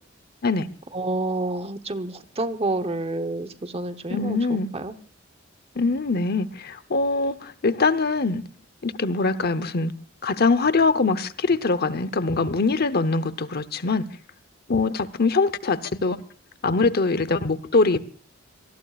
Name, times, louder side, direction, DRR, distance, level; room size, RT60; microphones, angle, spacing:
voice 1, 0.9-4.9, right 2 dB, 30° right, 1.0 m, -29 dB
voice 2, 4.1-4.7 5.8-8.4 8.8-9.9 10.2-14.1 14.7-16.2 16.6-18.0, left 3 dB, 50° left, 0.9 m, -23 dB
26.0 x 19.0 x 2.5 m
head